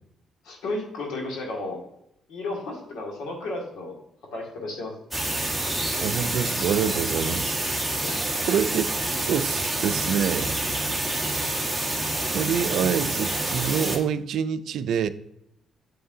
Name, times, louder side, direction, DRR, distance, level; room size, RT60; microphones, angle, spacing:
voice 1, 0.5-1.8 2.3-3.9 4.3-4.9 8.0-8.2, left 2 dB, 80° left, 2.0 m, -33 dB
sound 1, 5.1-14.0, right 1 dB, ahead, 1.6 m, -27 dB
voice 2, 6.0-7.6 8.4-8.9 9.3-10.6 12.3-15.1, right 8 dB, 75° right, 0.4 m, -26 dB
7.6 x 6.9 x 2.7 m
cardioid pair, 90°, 0 cm